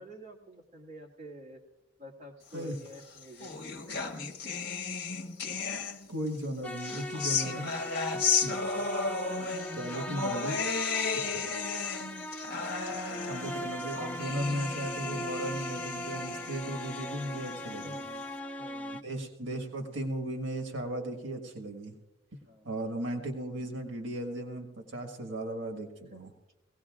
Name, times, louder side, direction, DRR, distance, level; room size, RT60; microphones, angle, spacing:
voice 1, 0.0-1.6 2.0-4.0 9.3-9.4 12.9-13.4 13.8-14.0 17.8-18.2 18.6-19.1 22.5-22.7 26.1-26.2, right 1 dB, 35° right, -1 dB, 1.8 m, -49 dB
sound 1, 2.9-6.3 6.8-18.2, left 5 dB, 50° left, 1.3 m, -34 dB
voice 2, 6.1-7.7 8.3-8.6 9.8-10.6 11.3-11.5 13.3-18.0 19.0-21.9 22.6-26.3, right 1 dB, 70° right, 3 dB, 1.6 m, -36 dB
sound 2, 6.6-19.0, left 1 dB, 5° left, 0.3 m, -40 dB
21.0 x 17.0 x 2.4 m, 1.0 s
head